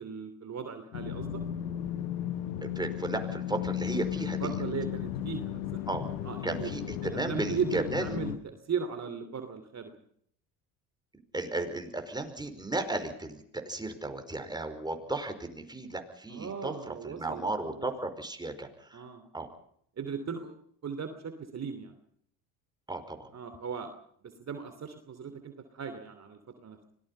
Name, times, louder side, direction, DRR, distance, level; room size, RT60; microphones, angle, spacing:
voice 1, 0.0-1.4 4.2-5.8 6.2-6.7 7.3-8.3 8.7-9.9 16.3-17.5 17.8-17.9 18.9-19.2 20.0-21.9 23.3-23.9 24.2-26.8, right 6 dB, 40° right, 8 dB, 3.0 m, -37 dB
sound 1, 0.9-8.4, left 11 dB, 85° left, 1.9 m, -35 dB
voice 2, 2.6-4.6 5.9-6.1 6.4-8.1 11.3-19.1 19.3-19.5 22.9-23.3, right 2 dB, 10° right, 6 dB, 5.1 m, -35 dB
25.5 x 19.5 x 5.6 m, 0.65 s
supercardioid pair, 80°, 42 cm